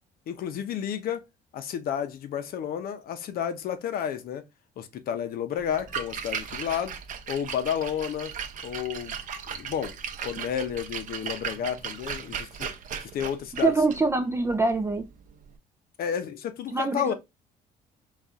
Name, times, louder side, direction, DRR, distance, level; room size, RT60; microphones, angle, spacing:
voice 1, 0.3-1.2 1.5-4.5 4.8-7.0 7.3-8.3 8.6-9.2 9.5-12.7 13.0-13.7 16.0-17.1, left 9 dB, 60° left, 0.7 m, -31 dB
Splash splatter, 5.6-15.5, right 7 dB, 50° right, 0.7 m, -37 dB
voice 2, 13.6-15.1 16.7-17.1, right 3 dB, 15° right, 0.4 m, -24 dB
4.1 x 2.4 x 3.5 m
cardioid pair, 110°, 17 cm